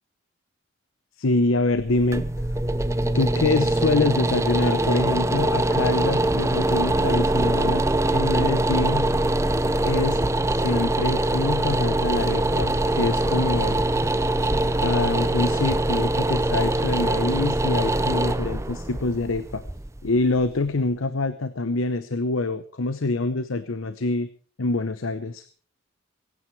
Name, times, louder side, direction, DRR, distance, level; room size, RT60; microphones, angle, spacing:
voice 1, 1.2-2.2 3.1-7.8 8.1-9.1 9.8-10.2 10.5-13.8 14.8-19.6 20.0-24.3 24.6-25.4, left 2 dB, 85° left, 12 dB, 0.9 m, -25 dB
sound 1, 1.7-20.7, right 1 dB, 15° right, 0.6 m, -23 dB
23.0 x 9.5 x 4.6 m, 0.42 s
head